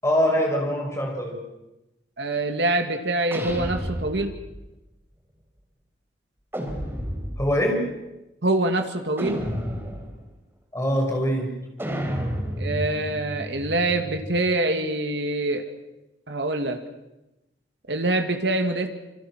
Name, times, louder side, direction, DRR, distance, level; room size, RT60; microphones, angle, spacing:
voice 1, 0.0-1.4 7.4-7.8 10.7-11.5, equal, 15° left, 1 dB, 6.3 m, -23 dB
voice 2, 2.2-4.3 8.4-9.4 12.6-15.6 16.3-16.8 17.9-18.9, right 2 dB, 70° right, 6 dB, 2.2 m, -25 dB
sound 1, 3.3-4.6 6.5-7.6 9.2-10.2 11.8-14.5, equal, 15° right, 3.7 m, -31 dB
27.0 x 26.0 x 6.2 m, 0.97 s
head